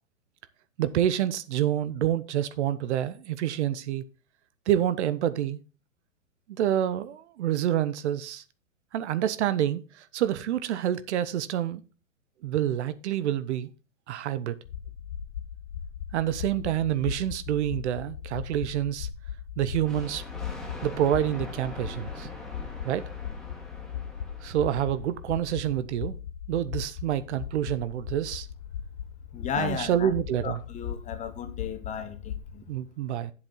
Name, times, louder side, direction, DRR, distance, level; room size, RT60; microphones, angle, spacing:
voice 1, 0.8-4.0 4.7-5.6 6.5-8.4 8.9-11.8 12.4-13.7 14.1-14.6 16.1-19.1 19.6-20.2 20.8-22.3 22.8-23.1 24.4-26.2 26.5-28.5 29.6-30.6 32.7-33.3, right 11 dB, 60° right, 1.0 m, -27 dB
sound 1, 14.6-32.5, left 9 dB, 70° left, 1.2 m, -38 dB
Thunder, 19.8-25.2, left 1 dB, ahead, 2.2 m, -43 dB
voice 2, 29.3-30.1 30.4-32.7, left 7 dB, 20° left, 0.9 m, -34 dB
9.0 x 7.7 x 3.8 m
hypercardioid pair, 125°, 39 cm